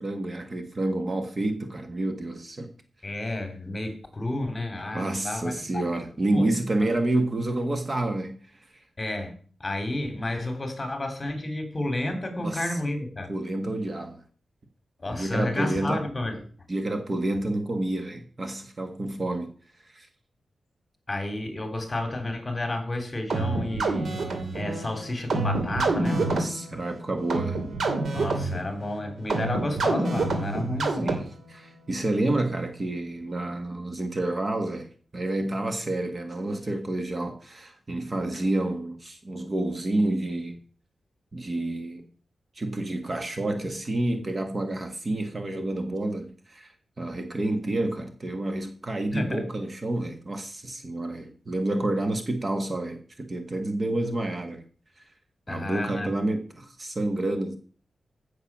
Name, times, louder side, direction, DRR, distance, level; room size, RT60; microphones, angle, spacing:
voice 1, 0.0-2.7 4.9-8.8 12.4-12.8 13.3-14.2 15.1-16.0 16.7-19.5 19.8-20.1 26.2-27.6 30.9-40.6 41.3-42.0 42.5-54.6 55.0-55.1 55.5-57.6, right 2 dB, 30° right, 1.4 m, -29 dB
voice 2, 3.0-5.8 6.3-6.5 6.8-6.9 9.0-13.3 15.0-16.4 21.1-24.2 24.5-26.3 28.1-31.1 49.1-49.4 55.5-56.1, left 1 dB, 25° left, 3.1 m, -31 dB
sound 1, 23.3-31.5, right 3 dB, 70° right, 2.5 m, -28 dB
16.0 x 6.8 x 6.1 m
wide cardioid pair, 130°, 0 cm